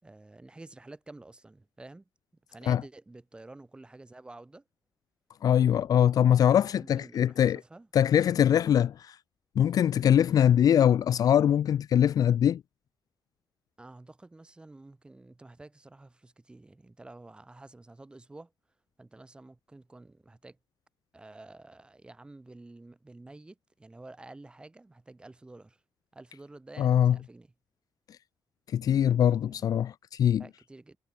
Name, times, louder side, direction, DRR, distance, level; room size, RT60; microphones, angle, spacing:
voice 1, 0.0-2.1 2.5-4.6 6.7-7.9 13.8-18.5 19.0-20.6 21.1-25.8 26.1-27.5 29.5-29.7 30.4-31.0, right 2 dB, 10° right, 3.2 m, -50 dB
voice 2, 5.4-7.6 7.9-9.2 9.6-12.6 26.8-27.2 28.7-30.4, left 9 dB, 50° left, 0.5 m, -22 dB
cardioid pair, 175°, 8 cm